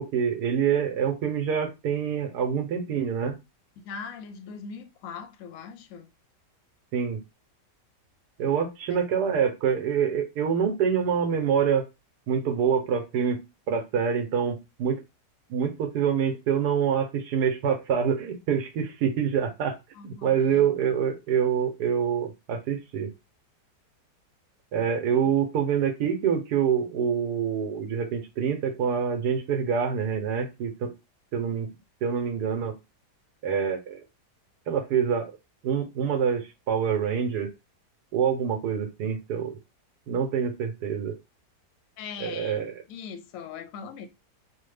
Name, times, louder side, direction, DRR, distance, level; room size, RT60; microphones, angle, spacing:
voice 1, 0.0-3.4 6.9-7.2 8.4-11.8 12.3-13.4 13.7-15.0 15.5-19.8 20.0-23.1 24.7-30.9 31.3-31.7 32.0-32.8 33.4-34.0 34.7-35.3 35.6-37.5 38.1-39.6 40.1-41.2 42.2-42.8, right 7 dB, 75° right, 1.2 m, -26 dB
voice 2, 3.8-6.1 8.9-9.0 19.9-20.7 25.2-25.3 42.0-44.1, left 6 dB, 70° left, 0.9 m, -40 dB
3.2 x 2.1 x 3.3 m
omnidirectional pair, 1.8 m